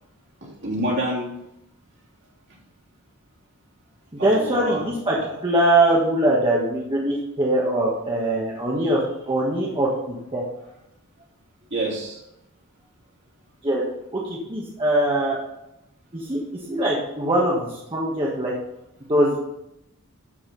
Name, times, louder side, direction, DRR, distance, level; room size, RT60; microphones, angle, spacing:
voice 1, 0.4-1.3 4.2-5.3 11.7-12.2, right 1 dB, 55° right, -3 dB, 2.9 m, -28 dB
voice 2, 4.2-5.2 5.4-10.4 13.6-13.8 14.1-15.4 16.1-18.5 19.1-19.4, right 1 dB, 25° right, -5 dB, 1.5 m, -22 dB
12.5 x 5.6 x 4.1 m, 0.87 s
head